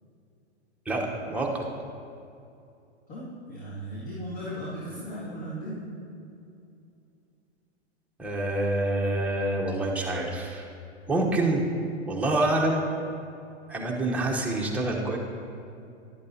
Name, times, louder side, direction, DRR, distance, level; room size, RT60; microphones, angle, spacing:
voice 1, 0.9-1.6 8.2-10.7 11.1-11.6 12.1-12.9 13.7-15.2, right 2 dB, 5° right, -2 dB, 0.9 m, -26 dB
voice 2, 3.1-5.9, equal, 50° left, -8 dB, 2.3 m, -37 dB
11.5 x 8.5 x 2.8 m, 2.6 s
hypercardioid pair, 130°, 34 cm